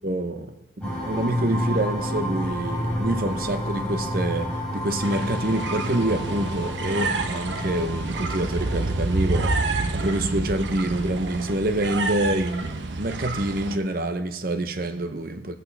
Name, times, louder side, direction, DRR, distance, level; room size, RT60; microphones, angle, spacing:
voice 1, 0.0-15.5, right 1 dB, 50° right, 0.8 m, -27 dB
sound 1, 0.8-11.3, equal, 5° left, 3.8 m, -31 dB
sound 2, 5.0-13.8, right 3 dB, 80° right, 0.8 m, -28 dB
18.0 x 8.4 x 3.4 m
head